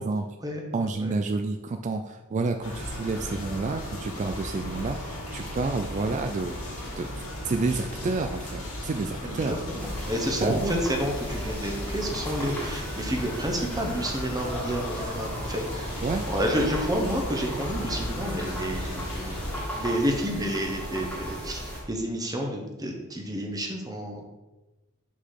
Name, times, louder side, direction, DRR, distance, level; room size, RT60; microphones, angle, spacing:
voice 1, 0.7-7.1 7.4-9.7 10.4-10.8 16.0-16.2, right 3 dB, 35° right, 5 dB, 0.3 m, -29 dB
sound 1, 2.6-19.6, left 1 dB, 80° left, 2.2 m, -36 dB
voice 2, 9.2-16.0 16.3-19.4 19.8-21.6 21.9-24.2, equal, 20° right, 1 dB, 1.0 m, -30 dB
sound 2, 9.8-21.8, equal, 5° left, 1.7 m, -36 dB
6.0 x 4.1 x 5.7 m, 1.1 s
head